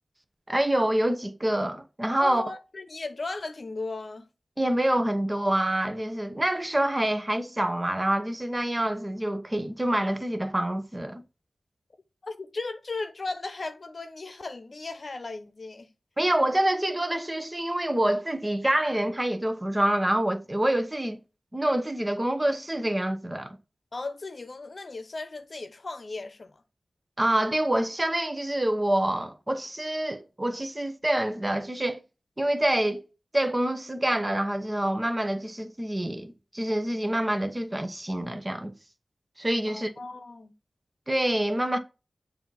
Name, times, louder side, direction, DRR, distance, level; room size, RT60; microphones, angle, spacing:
voice 1, 0.5-2.4 4.6-11.2 16.2-21.2 21.5-23.6 27.2-32.0 32.4-33.0 33.3-38.7 39.4-39.9 41.1-41.8, right 1 dB, 25° right, 0.9 m, -26 dB
voice 2, 2.2-4.3 12.2-15.9 23.9-26.6 39.7-40.5, left 3 dB, 60° left, 0.8 m, -36 dB
7.0 x 2.8 x 5.5 m
cardioid pair, 45°, 0 cm